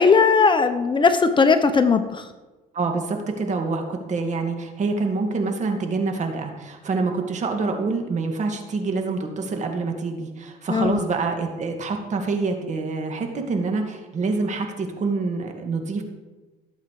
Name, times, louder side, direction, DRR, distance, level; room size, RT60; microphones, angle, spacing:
voice 1, 0.0-2.3 10.7-11.0, left 5 dB, 30° left, 9 dB, 0.9 m, -18 dB
voice 2, 2.7-16.0, right 3 dB, 45° right, 4 dB, 2.3 m, -26 dB
17.5 x 8.1 x 4.9 m, 1.2 s
cardioid pair, 110°, 17 cm